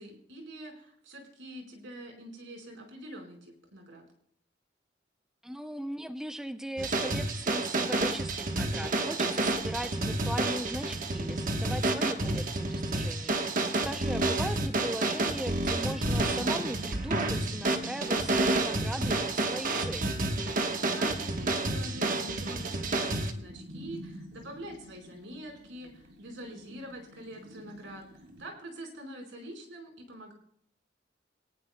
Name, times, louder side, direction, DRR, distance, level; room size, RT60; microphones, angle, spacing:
voice 1, 0.0-4.0 20.8-30.3, right 1 dB, 90° right, 2 dB, 4.7 m, -45 dB
voice 2, 5.4-20.2, equal, 5° right, 8 dB, 0.5 m, -38 dB
sound 1, 6.8-23.3, right 2 dB, 45° right, 1.2 m, -30 dB
sound 2, 9.2-28.5, equal, 65° right, 2.3 m, -48 dB
22.5 x 18.0 x 2.2 m, 0.67 s
head